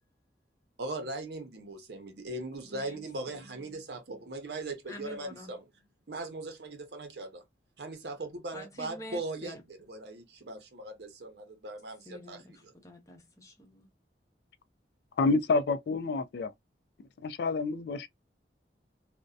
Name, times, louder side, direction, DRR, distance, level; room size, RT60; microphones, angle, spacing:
voice 1, 0.8-5.7 6.1-7.4 7.8-12.7, right 2 dB, 65° right, 0.7 m, -39 dB
voice 2, 2.7-3.0 3.3-3.4 4.9-5.5 8.5-9.6 12.1-13.9, left 1 dB, 20° left, 0.7 m, -47 dB
voice 3, 15.2-16.5 17.2-18.1, left 3 dB, 65° left, 0.3 m, -28 dB
2.6 x 2.1 x 2.3 m
head